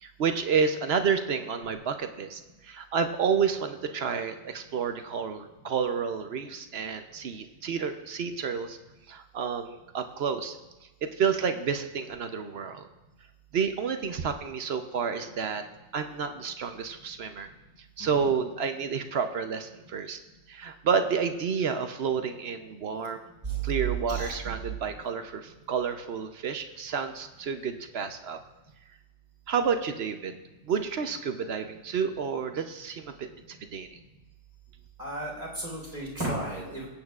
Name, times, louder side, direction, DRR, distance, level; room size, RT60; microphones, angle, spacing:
voice 1, 0.0-8.8 9.1-10.6 11.0-12.9 13.5-15.6 15.9-17.5 18.0-20.2 20.5-23.2 23.6-28.4 29.5-30.4 30.7-34.0, right 6 dB, 60° right, 8 dB, 0.9 m, -30 dB
voice 2, 18.0-18.3 23.4-24.4 35.0-36.9, right 4 dB, 35° right, -4 dB, 4.1 m, -33 dB
24.0 x 8.7 x 2.4 m, 1.1 s
omnidirectional pair, 1.3 m